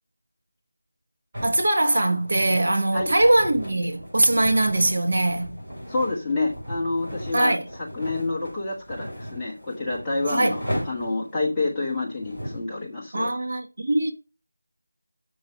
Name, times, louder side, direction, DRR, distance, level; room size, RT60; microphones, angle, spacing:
sound 1, 1.3-12.7, equal, 15° right, 4.9 m, -37 dB
voice 1, 1.4-5.5 7.3-7.6 10.3-10.6 13.1-14.1, right 1 dB, 45° right, 1.5 m, -21 dB
voice 2, 5.9-13.3, left 2 dB, 5° left, 1.2 m, -28 dB
7.7 x 6.1 x 5.2 m
figure-of-eight pair, 180°, 0 cm